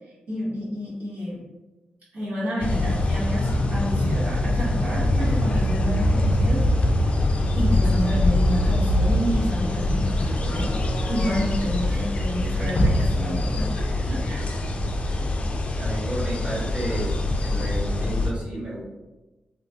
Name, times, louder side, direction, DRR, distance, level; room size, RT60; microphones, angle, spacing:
voice 1, 0.3-1.4 2.1-7.1 7.5-10.7 11.1-14.5, equal, 70° right, -9 dB, 1.1 m, -29 dB
sound 1, 2.6-18.3, left 1 dB, 45° left, 0.4 m, -23 dB
voice 2, 15.8-18.8, equal, 45° right, -6 dB, 1.3 m, -32 dB
3.0 x 2.2 x 2.7 m, 1.1 s
cardioid pair, 65°, 3 cm